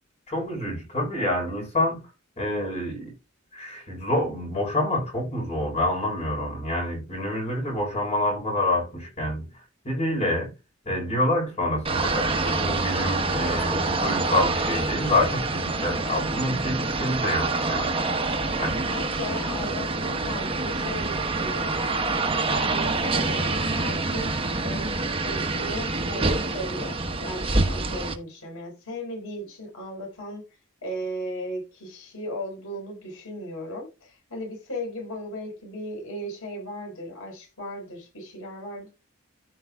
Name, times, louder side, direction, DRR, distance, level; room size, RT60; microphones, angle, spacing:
voice 1, 0.3-2.1 2.4-3.1 3.5-9.5 9.8-10.5 10.9-17.9 18.6-18.8, left 1 dB, 30° left, 4.1 m, -27 dB
sound 1, 11.8-28.1, right 3 dB, 25° right, 1.1 m, -26 dB
voice 2, 18.8-22.0 22.5-30.5 30.8-38.9, equal, 85° left, 4.6 m, -36 dB
14.5 x 5.3 x 2.3 m
head